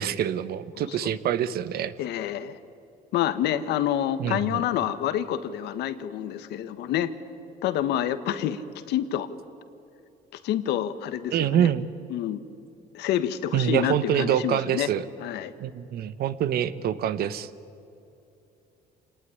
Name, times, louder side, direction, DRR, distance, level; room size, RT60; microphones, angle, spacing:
voice 1, 0.0-1.9 4.2-4.6 11.3-11.9 13.5-15.0 15.6-17.5, right 10 dB, 65° right, 14 dB, 1.2 m, -25 dB
voice 2, 0.7-1.1 2.0-2.6 3.1-7.1 7.6-9.3 10.4-11.7 12.1-12.4 12.9-14.9 15.2-15.5, left 11 dB, 80° left, 12 dB, 1.4 m, -28 dB
26.5 x 19.0 x 9.9 m, 2.7 s
cardioid pair, 110°, 17 cm